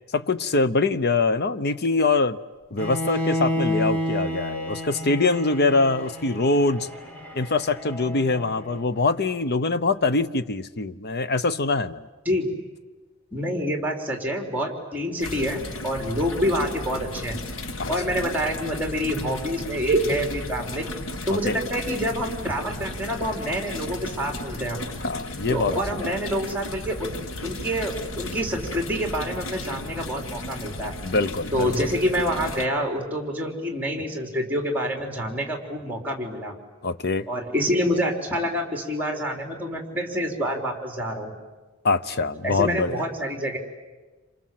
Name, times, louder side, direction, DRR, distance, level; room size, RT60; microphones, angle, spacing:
voice 1, 0.1-2.4 2.7-6.9 7.3-12.1 17.8-17.9 21.5-21.6 25.0-26.1 31.0-31.9 36.8-37.3 41.8-43.0, left 3 dB, 55° left, 0.9 m, -23 dB
Bowed string instrument, 2.8-8.8, equal, 10° left, 2.8 m, -30 dB
voice 2, 12.3-12.6 13.3-17.4 17.9-21.0 21.3-24.8 25.5-27.2 27.4-31.0 31.5-36.6 37.3-41.3 42.4-43.6, equal, 10° right, 3.8 m, -27 dB
sound 1, 15.2-32.7, left 2 dB, 80° left, 1.3 m, -35 dB
28.5 x 27.5 x 7.7 m
head